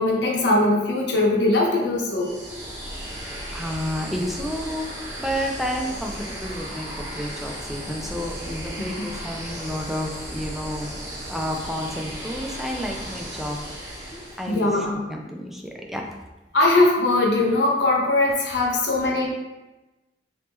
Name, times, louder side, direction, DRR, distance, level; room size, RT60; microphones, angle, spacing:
voice 1, 0.0-2.3 9.0-9.1 14.5-15.0 16.5-19.3, left 2 dB, 90° left, -2 dB, 0.8 m, -20 dB
sound 1, 2.1-14.8, right 1 dB, 15° right, 1.2 m, -35 dB
voice 2, 3.2-13.6 14.1-16.1 18.8-18.9, equal, ahead, 1 dB, 0.4 m, -31 dB
2.9 x 2.9 x 3.5 m, 1.1 s
head